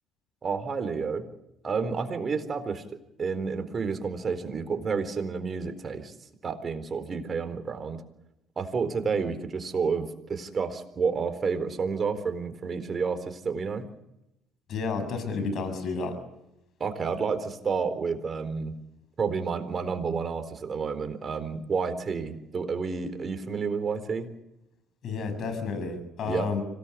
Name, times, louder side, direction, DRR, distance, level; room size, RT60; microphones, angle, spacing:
voice 1, 0.4-1.3 1.6-6.1 6.4-8.0 8.6-13.9 16.8-18.7 19.2-24.3 26.2-26.5, right 5 dB, 40° right, 9 dB, 4.1 m, -30 dB
voice 2, 14.7-16.1 25.0-26.6, left 4 dB, 55° left, 8 dB, 7.5 m, -31 dB
26.0 x 18.5 x 8.4 m, 0.87 s
hypercardioid pair, 60°, 0 cm